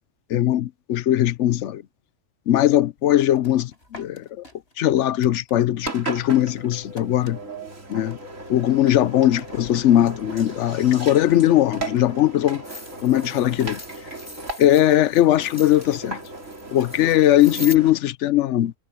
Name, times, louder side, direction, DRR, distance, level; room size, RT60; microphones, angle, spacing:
voice 1, 0.3-1.8 2.5-4.4 4.8-7.4 7.9-8.2 8.5-12.6 13.0-13.8 14.6-16.2 16.7-18.7, left 12 dB, 70° left, 0.9 m, -19 dB
sound 1, 3.0-5.9 6.2-10.3 10.7-11.3 11.5-17.8, left 1 dB, 55° left, 6.3 m, -50 dB
Engine, 5.8-17.9, right 3 dB, 85° right, 4.1 m, -36 dB
sound 2, 12.6-17.8, left 1 dB, 10° left, 2.1 m, -41 dB
omnidirectional pair, 1.3 m